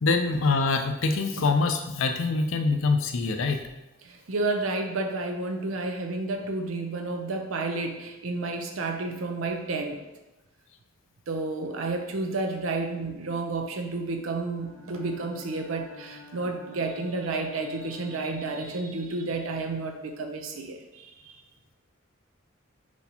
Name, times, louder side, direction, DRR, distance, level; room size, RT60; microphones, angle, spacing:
voice 1, 0.0-3.6, left 3 dB, 70° left, 6 dB, 0.5 m, -24 dB
voice 2, 4.0-10.0 11.3-21.4, right 3 dB, 85° right, 5 dB, 0.6 m, -31 dB
Bowed string instrument, 14.5-19.1, left 3 dB, 40° right, 1.0 m, -49 dB
4.6 x 4.1 x 2.8 m, 1.0 s
head